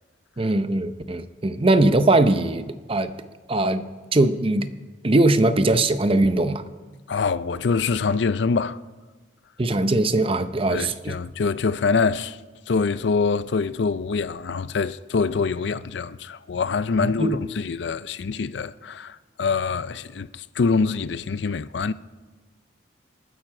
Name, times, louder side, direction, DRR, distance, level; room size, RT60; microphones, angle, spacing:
voice 1, 0.4-3.1 3.5-3.8 4.1-4.7 5.0-6.6 9.6-11.1 17.0-17.4, right 2 dB, 30° right, 0.7 m, -20 dB
voice 2, 7.1-8.8 10.7-12.4 12.7-21.9, left 4 dB, 70° left, 0.5 m, -25 dB
27.5 x 9.2 x 4.9 m
head